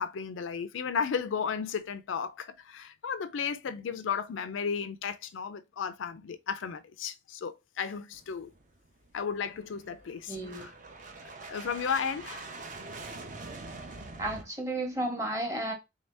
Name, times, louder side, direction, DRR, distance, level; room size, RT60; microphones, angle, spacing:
voice 1, 0.0-8.5 9.1-10.7 11.2-12.5, left 6 dB, 90° left, 0.4 m, -34 dB
sound 1, 8.1-14.4, right 3 dB, 45° right, 0.6 m, -45 dB
voice 2, 10.3-10.6 14.2-15.7, right 1 dB, 15° right, 1.0 m, -32 dB
3.7 x 2.7 x 3.3 m
head